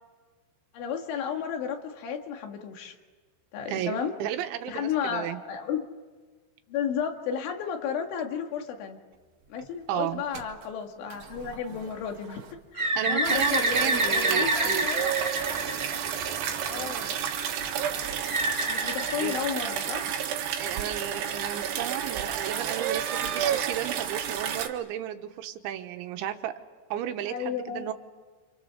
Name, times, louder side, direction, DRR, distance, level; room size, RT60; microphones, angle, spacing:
voice 1, 0.7-3.0 3.5-4.1 4.7-5.9 6.7-9.0 9.5-12.4 12.7-15.1 16.7-17.1 18.7-20.1 27.3-27.9, left 7 dB, 85° left, 4 dB, 4.5 m, -33 dB
voice 2, 3.7-5.4 9.9-10.2 13.0-14.9 19.2-19.4 20.6-26.5 26.9-27.9, right 11 dB, 90° right, 7 dB, 3.6 m, -33 dB
sound 1, 9.1-20.7 21.0-21.5 21.9-22.0, right 5 dB, 55° right, 2.3 m, -45 dB
Bird, 12.8-16.5 18.2-20.0, right 2 dB, 20° right, 1.4 m, -28 dB
sound 2, 13.2-24.7, right 9 dB, 70° right, 3.5 m, -31 dB
28.5 x 27.5 x 7.0 m, 1.4 s
omnidirectional pair, 5.3 m